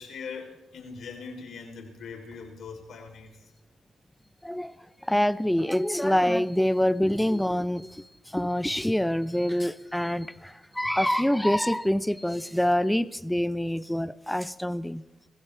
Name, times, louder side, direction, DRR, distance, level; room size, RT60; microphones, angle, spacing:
voice 1, 0.0-3.4, left 5 dB, 65° left, 1 dB, 3.7 m, -41 dB
voice 2, 4.4-4.7 5.0-15.0, equal, 5° left, 16 dB, 0.5 m, -26 dB
24.5 x 15.0 x 3.4 m, 0.98 s
cardioid pair, 90°, 0 cm